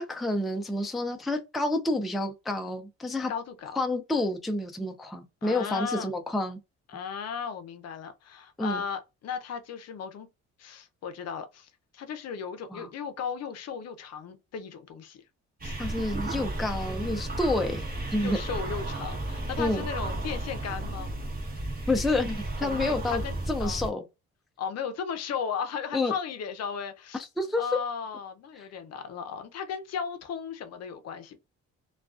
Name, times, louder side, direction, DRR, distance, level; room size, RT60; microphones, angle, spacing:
voice 1, 0.0-3.3 3.8-6.6 8.6-8.8 12.7-12.9 15.8-18.4 19.6-19.9 21.9-23.2 23.5-24.0 25.9-26.1 27.4-27.6, left 2 dB, ahead, 0.3 m, -29 dB
voice 2, 3.3-3.8 5.4-6.1 6.9-10.3 10.6-15.2 15.6-15.8 18.2-21.2 22.6-23.9 24.6-27.2 27.6-31.4, left 6 dB, 55° left, 0.5 m, -36 dB
sound 1, 15.6-23.9, right 2 dB, 30° right, 0.9 m, -33 dB
2.3 x 2.3 x 2.3 m
cardioid pair, 90°, 30 cm